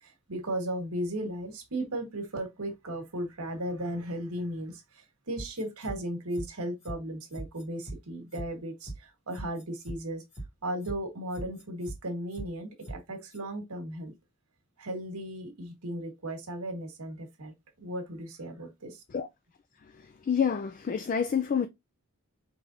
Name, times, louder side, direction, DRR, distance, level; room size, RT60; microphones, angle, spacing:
voice 1, 0.0-10.2 10.6-14.1 14.8-17.5 17.8-19.0, right 1 dB, 75° right, 1.3 m, -36 dB
sound 1, 5.4-6.0 6.3-6.5 6.8-7.0 7.3-8.0 8.3-8.5 8.8-9.0 9.3-10.0 10.3-10.5 10.8-11.0 11.3-12.0 12.3-12.5 12.8-13.0 13.3-13.4, right 2 dB, 20° left, 2.0 m, -40 dB
voice 2, 20.3-21.7, left 7 dB, 40° left, 0.3 m, -27 dB
4.9 x 3.3 x 2.6 m
head